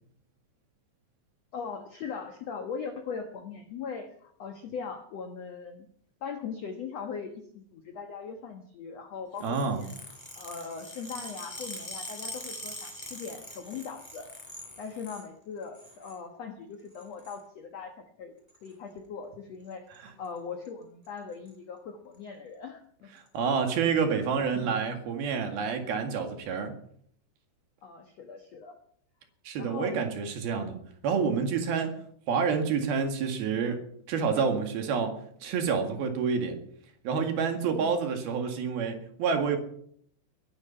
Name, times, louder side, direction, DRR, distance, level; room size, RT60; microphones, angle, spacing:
voice 1, 1.5-5.9 6.2-9.9 10.3-14.3 14.8-18.3 18.6-23.1 27.8-28.8 29.6-30.0 31.9-32.0 37.8-38.0, left 6 dB, 80° left, 6 dB, 1.4 m, -40 dB
sound 1, 9.4-15.3 15.6-16.2 16.9-17.4 18.5-18.7 19.7-20.0 20.2-20.4 20.6-20.7 21.0-21.5 22.1-22.2 23.2-23.3, equal, 10° left, 4.2 m, -43 dB
voice 2, 9.4-9.8 23.3-26.8 29.5-30.8 31.0-31.9 32.3-36.6 37.0-39.6, right 6 dB, 65° right, 5 dB, 3.7 m, -28 dB
21.0 x 11.5 x 5.7 m, 0.65 s
omnidirectional pair, 5.0 m